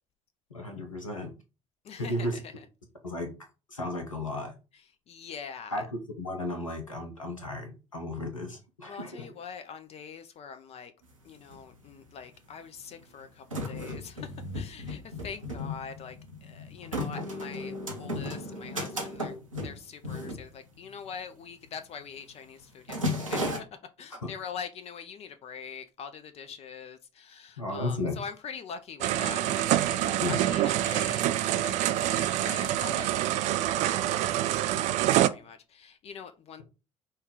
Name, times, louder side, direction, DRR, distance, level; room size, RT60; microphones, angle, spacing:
voice 1, 0.5-1.3 2.0-2.4 3.0-3.3 3.7-4.5 5.7-5.8 6.2-9.2 27.6-28.2 30.2-30.4, left 1 dB, 85° left, 0.7 m, -34 dB
voice 2, 1.8-2.6 4.7-5.9 8.9-10.9 11.2-16.2 16.4-19.4 19.6-23.4 24.0-31.3 31.6-34.2 34.5-36.6, left 6 dB, 40° left, 0.6 m, -43 dB
sound 1, 11.1-11.2 11.4-12.2 12.8-21.1 21.4-21.7 22.0-22.3 22.6-23.6, left 1 dB, 85° right, 0.8 m, -35 dB
sound 2, 29.0-35.3, right 13 dB, 50° right, 0.4 m, -26 dB
5.4 x 2.3 x 3.6 m
figure-of-eight pair, 55°, 16 cm